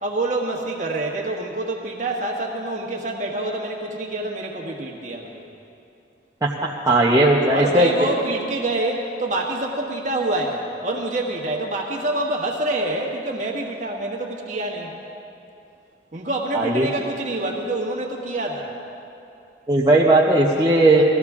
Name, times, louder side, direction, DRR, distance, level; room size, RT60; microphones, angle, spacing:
voice 1, 0.0-5.4 7.5-14.9 16.1-18.7, right 2 dB, 40° right, -1 dB, 1.6 m, -26 dB
voice 2, 6.9-7.9 16.5-16.9 19.7-21.0, right 2 dB, 20° right, -5 dB, 0.8 m, -16 dB
19.5 x 14.5 x 3.7 m, 2.7 s
head